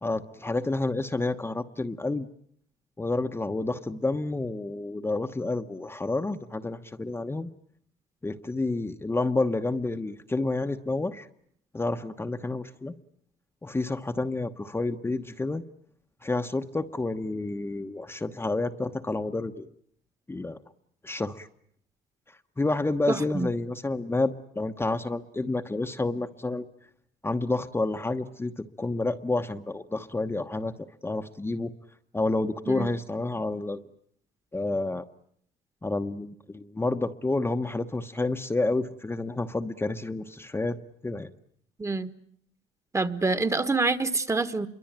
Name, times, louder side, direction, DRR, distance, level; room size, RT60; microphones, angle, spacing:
voice 1, 0.0-2.3 3.0-7.5 8.2-11.3 11.7-12.9 13.6-15.6 16.2-19.7 20.3-20.6 21.0-21.5 22.6-26.7 27.2-30.7 31.0-31.7 32.1-33.8 34.5-35.0 35.8-40.8 41.0-41.3, left 2 dB, 15° left, 6 dB, 1.1 m, -29 dB
voice 2, 23.1-23.5 32.7-32.9 41.8-42.1 42.9-44.7, right 3 dB, 15° right, 11 dB, 1.5 m, -26 dB
27.5 x 23.5 x 8.9 m, 0.66 s
cardioid pair, 110°, 17 cm